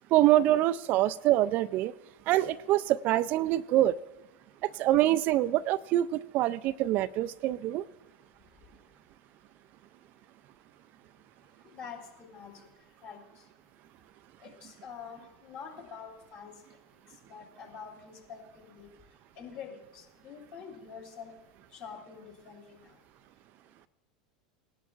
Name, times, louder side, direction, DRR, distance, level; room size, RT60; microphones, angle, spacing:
voice 1, 0.1-1.9 2.3-4.0 4.8-7.8, right 14 dB, 50° right, 14 dB, 0.3 m, -25 dB
voice 2, 11.6-12.7 13.0-13.4 14.4-16.6 17.2-18.9 19.4-21.3 21.7-23.0, left 6 dB, 50° left, 0 dB, 3.6 m, -46 dB
20.0 x 11.0 x 2.4 m, 0.99 s
hypercardioid pair, 85°, 4 cm